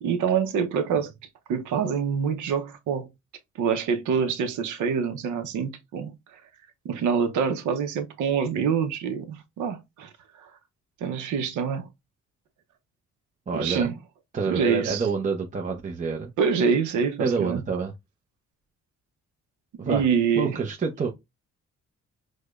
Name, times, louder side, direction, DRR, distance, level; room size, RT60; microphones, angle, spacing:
voice 1, 0.0-1.1 1.5-3.1 3.6-6.1 6.8-10.1 10.4-10.5 11.0-11.9 13.5-13.9 14.5-15.1 16.4-17.6 19.9-20.6, right 6 dB, 75° right, 0.7 m, -25 dB
voice 2, 13.5-13.9 14.3-16.3 17.2-17.9 19.8-20.1 20.4-21.1, right 5 dB, 25° right, 0.6 m, -27 dB
4.7 x 2.2 x 2.3 m
cardioid pair, 90°, 30 cm